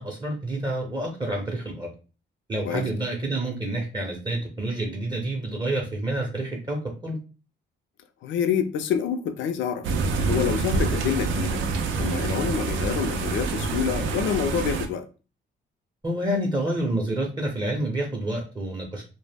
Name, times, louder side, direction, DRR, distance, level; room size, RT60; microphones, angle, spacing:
voice 1, 0.0-1.9 2.5-7.2 16.0-19.0, right 1 dB, 20° right, 0.6 m, -28 dB
voice 2, 8.2-9.9 10.3-11.6 12.0-15.1, left 8 dB, 75° left, 0.4 m, -27 dB
sound 1, 9.8-14.9, right 4 dB, 75° right, 0.4 m, -26 dB
2.0 x 2.0 x 3.3 m
cardioid pair, 90°, 20 cm